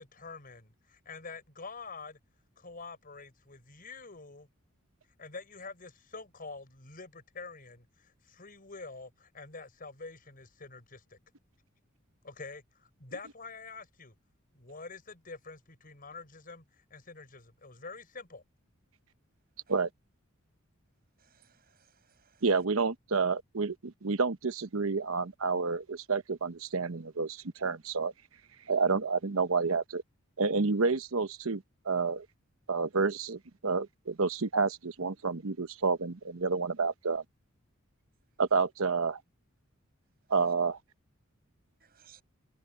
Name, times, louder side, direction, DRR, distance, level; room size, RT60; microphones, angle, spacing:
voice 1, 0.0-2.2 2.6-4.5 5.2-11.2 12.2-14.1 14.5-16.6 16.9-18.4, left 4 dB, 45° left, 5.5 m, -46 dB
voice 2, 21.2-22.4 41.8-42.2, right 9 dB, 45° right, 7.5 m, -62 dB
voice 3, 22.4-28.1 28.7-30.0 30.4-32.2 32.7-37.2 38.4-39.2 40.3-40.8, right 4 dB, 75° right, 1.0 m, -29 dB
head